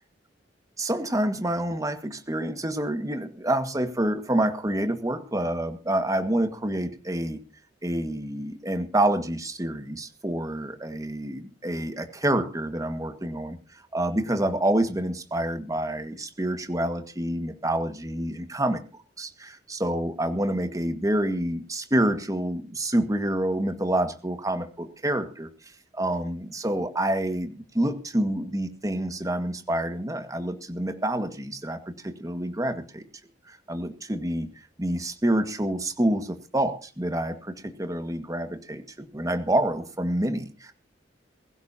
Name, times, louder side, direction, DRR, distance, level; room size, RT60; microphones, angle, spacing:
voice 1, 0.8-7.4 7.8-13.6 13.9-18.8 19.2-25.5 25.9-33.1 33.5-34.5 34.8-40.7, right 1 dB, 20° right, 7 dB, 1.8 m, -27 dB
21.5 x 16.0 x 2.9 m, 0.35 s
head